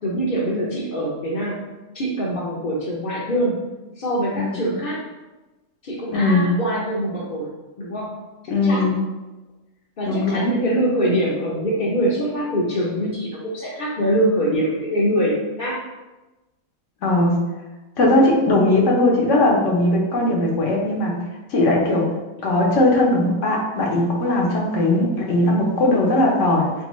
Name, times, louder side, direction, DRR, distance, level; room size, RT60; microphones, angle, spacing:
voice 1, 0.0-1.6 1.9-3.6 4.0-5.0 5.8-7.5 7.8-8.2 8.6-8.9 10.0-15.8, equal, 45° left, -6 dB, 0.7 m, -23 dB
voice 2, 6.1-6.5 8.5-9.0 10.1-10.5 17.0-17.4 18.0-21.2 21.5-22.1 22.4-26.8, left 1 dB, 65° left, -1 dB, 1.1 m, -19 dB
3.7 x 3.4 x 3.1 m, 1.1 s
omnidirectional pair, 1.4 m